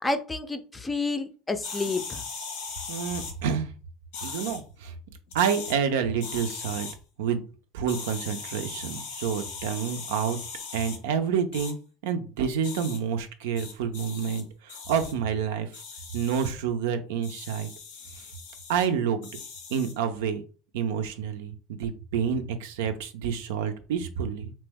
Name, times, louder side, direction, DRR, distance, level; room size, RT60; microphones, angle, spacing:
voice 1, 0.0-2.2, left 3 dB, 15° left, 8 dB, 0.4 m, -29 dB
sound 1, 1.6-3.3 4.1-4.6 5.3-5.7 6.2-6.9 7.9-11.0 11.5-11.7 12.6-13.0 13.5-14.4 14.7-15.1 15.7-16.5 17.2-18.8 19.2-20.0, left 5 dB, 85° left, 1.0 m, -39 dB
voice 2, 2.9-3.7 4.2-4.9 5.3-6.9 7.2-7.4 7.7-10.4 10.7-11.8 12.0-15.7 16.1-17.7 18.2-18.3 18.7-19.3 19.7-20.4 20.7-24.5, right 7 dB, 85° right, 8 dB, 0.4 m, -28 dB
2.8 x 2.1 x 3.3 m, 0.36 s
supercardioid pair, 100°, 0 cm